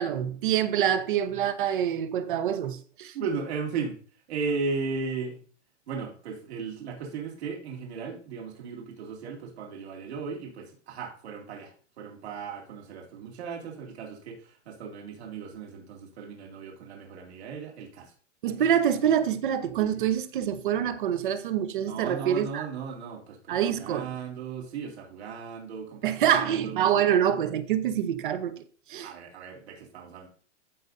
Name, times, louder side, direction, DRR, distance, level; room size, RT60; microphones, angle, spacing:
voice 1, 0.0-3.1 18.4-22.7 23.5-24.1 26.0-28.6 28.9-29.1, right 9 dB, 45° right, 0.8 m, -26 dB
voice 2, 3.1-4.0 4.3-5.4 5.9-18.1 19.7-20.0 21.8-26.9 29.0-30.3, right 5 dB, 60° right, 2.5 m, -36 dB
14.5 x 5.4 x 2.6 m
hypercardioid pair, 175°, 37 cm